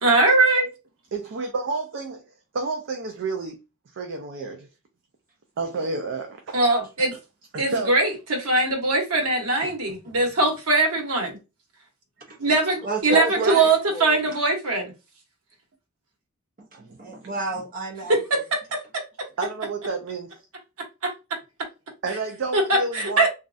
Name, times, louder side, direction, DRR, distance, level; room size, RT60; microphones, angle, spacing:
voice 1, 0.0-0.7 6.5-7.1 7.6-11.4 12.4-14.9 18.1-18.4 18.7-18.8 22.5-23.3, right 2 dB, 90° right, 1.1 m, -21 dB
voice 2, 1.1-2.2 2.5-3.6 3.9-4.7 5.6-6.6 7.5-8.0 13.1-13.7 14.3-14.4 16.7-17.0 19.4-20.4 22.0-23.3, right 3 dB, 60° right, 0.5 m, -30 dB
voice 3, 9.6-10.1 12.3-12.4 12.8-14.2 16.7-18.4, right 2 dB, 40° right, 0.9 m, -32 dB
3.0 x 2.4 x 2.5 m
head